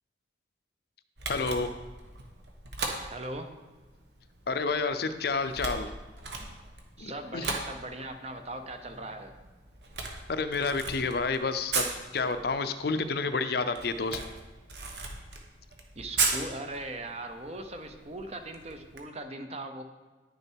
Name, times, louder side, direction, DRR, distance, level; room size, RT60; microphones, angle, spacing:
Camera, 1.2-19.0, right 4 dB, 60° right, 1.2 m, -38 dB
voice 1, 1.3-1.7 4.5-5.9 7.0-7.5 10.3-14.2, left 4 dB, 55° left, 10 dB, 0.5 m, -30 dB
voice 2, 3.0-3.5 7.0-9.3 16.0-19.8, right 2 dB, 35° right, 7 dB, 0.7 m, -39 dB
10.0 x 6.6 x 4.5 m, 1.3 s
head